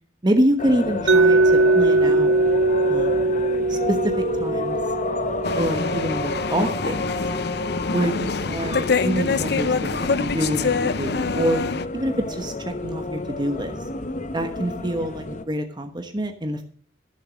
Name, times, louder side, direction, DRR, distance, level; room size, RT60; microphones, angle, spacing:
voice 1, 0.2-2.3 2.9-3.3 3.7-4.8 5.6-7.0 7.9-11.6 11.9-13.7 14.3-16.6, right 1 dB, 25° right, 6 dB, 1.2 m, -26 dB
sound 1, 0.6-15.4, left 2 dB, 45° left, 1.1 m, -30 dB
Mallet percussion, 1.1-6.9, right 2 dB, 75° right, 0.5 m, -21 dB
sound 2, 5.4-11.8, left 4 dB, 65° left, 0.7 m, -25 dB
14.0 x 7.4 x 6.3 m, 0.43 s
head